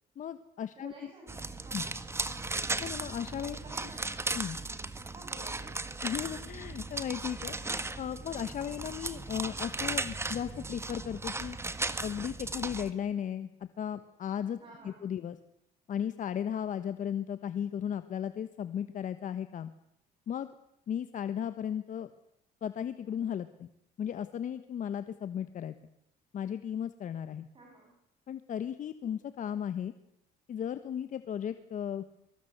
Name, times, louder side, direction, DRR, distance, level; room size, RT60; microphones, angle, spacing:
voice 1, 0.2-1.1 1.7-1.8 2.8-3.6 4.3-4.6 6.0-11.6 12.0-14.6 14.8-15.4 15.9-19.7 20.3-20.5 20.9-22.1 22.6-23.7 24.0-25.8 26.3-27.5 28.3-29.9 30.5-32.2, left 9 dB, 50° left, 11 dB, 1.2 m, -36 dB
voice 2, 0.8-1.9 3.6-4.1 5.1-5.9 14.6-15.0 27.5-27.9, right 2 dB, 30° right, -1 dB, 8.0 m, -52 dB
sound 1, 1.3-12.9, right 3 dB, 15° right, 1.7 m, -36 dB
24.5 x 22.5 x 8.0 m, 0.77 s
cardioid pair, 110°, 17 cm